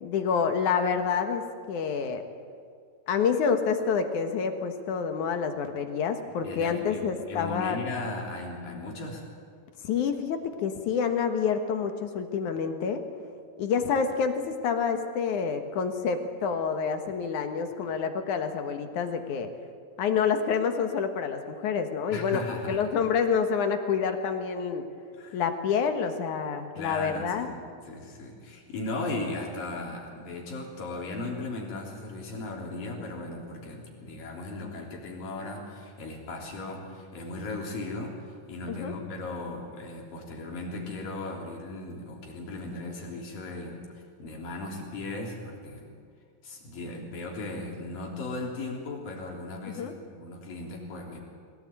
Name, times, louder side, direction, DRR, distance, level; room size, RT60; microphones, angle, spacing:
voice 1, 0.0-1.4 1.7-2.2 3.1-7.8 9.8-13.0 13.6-19.5 20.0-24.8 25.3-27.5 38.7-38.9 49.8-49.9, left 6 dB, 65° left, 6 dB, 2.7 m, -28 dB
voice 2, 6.4-9.3 22.1-23.0 25.2-25.4 26.8-43.9 44.2-45.9 46.4-51.2, left 2 dB, 80° left, -1 dB, 5.2 m, -37 dB
22.0 x 18.0 x 8.9 m, 2.2 s
omnidirectional pair, 3.9 m